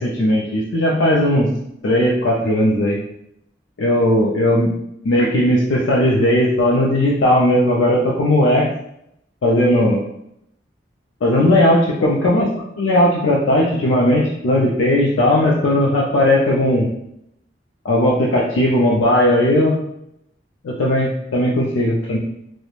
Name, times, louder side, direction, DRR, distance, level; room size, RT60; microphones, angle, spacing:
voice 1, 0.0-1.5 1.8-3.0 3.8-4.7 5.0-8.7 9.4-10.0 11.2-16.9 17.8-19.8 20.6-22.2, left 1 dB, 85° left, -4 dB, 0.4 m, -17 dB
3.0 x 2.1 x 2.4 m, 0.78 s
head